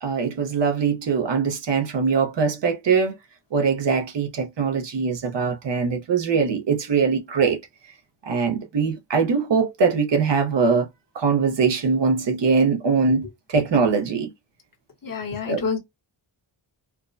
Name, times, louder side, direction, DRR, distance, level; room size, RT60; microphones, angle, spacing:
voice 1, 0.0-3.2 3.5-7.6 8.2-10.9 11.1-14.3 15.5-15.6, right 5 dB, 65° right, 0.8 m, -22 dB
voice 2, 15.0-15.8, left 5 dB, 45° left, 1.1 m, -27 dB
4.5 x 2.1 x 2.5 m
wide cardioid pair, 130°, 46 cm